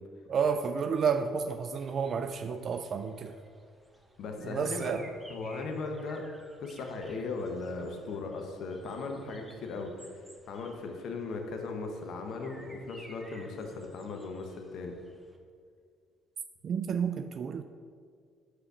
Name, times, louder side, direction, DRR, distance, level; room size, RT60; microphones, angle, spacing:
voice 1, 0.3-3.4 4.4-5.1 16.6-17.6, right 6 dB, 50° right, 8 dB, 0.3 m, -31 dB
sound 1, 1.8-15.4, right 1 dB, 15° right, 1.0 m, -56 dB
voice 2, 4.2-5.0 5.3-6.2 6.6-14.9, left 3 dB, 65° left, 3 dB, 0.8 m, -38 dB
5.5 x 4.0 x 6.0 m, 2.1 s
hypercardioid pair, 60°, 0 cm